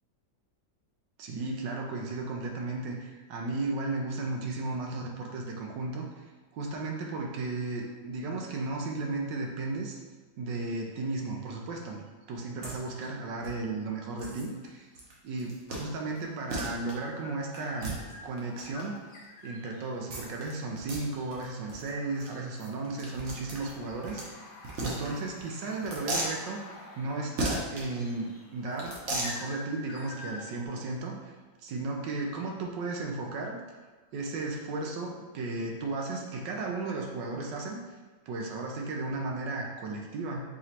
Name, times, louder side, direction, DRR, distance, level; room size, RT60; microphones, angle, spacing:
voice 1, 1.2-6.2 6.5-10.0 10.4-12.0 12.3-14.9 15.2-17.9 18.2-19.0 19.4-24.4 24.8-26.6 27.0-31.3 31.6-33.6 34.1-37.8 38.3-40.4, right 3 dB, 80° right, 0 dB, 1.3 m, -34 dB
sound 1, 12.6-12.7 13.0-13.1 13.4-13.5 14.2-14.5 14.9-15.1 15.4-15.8 16.2-16.3 16.5-16.9 17.5-18.8 20.1-20.5 20.8-21.0 21.3-21.4 21.7-21.9 22.2-22.3 22.6-24.3 24.6-25.4 25.8-26.3 27.4-27.8 28.7-29.4, right 2 dB, 50° right, 0.9 m, -35 dB
sound 2, 14.5-14.8 15.9-30.7, left 2 dB, 70° left, 1.2 m, -50 dB
4.9 x 3.1 x 2.8 m, 1.3 s
omnidirectional pair, 2.0 m